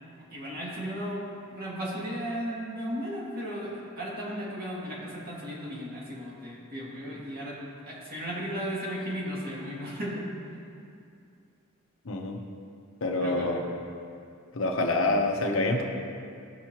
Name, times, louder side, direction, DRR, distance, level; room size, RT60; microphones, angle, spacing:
voice 1, 0.3-7.6 7.9-10.4 13.2-13.5, equal, 45° right, -6 dB, 2.3 m, -35 dB
voice 2, 12.1-12.4 13.0-13.6 14.5-15.8, left 2 dB, 65° left, 1 dB, 1.0 m, -26 dB
15.5 x 5.8 x 3.0 m, 2.4 s
head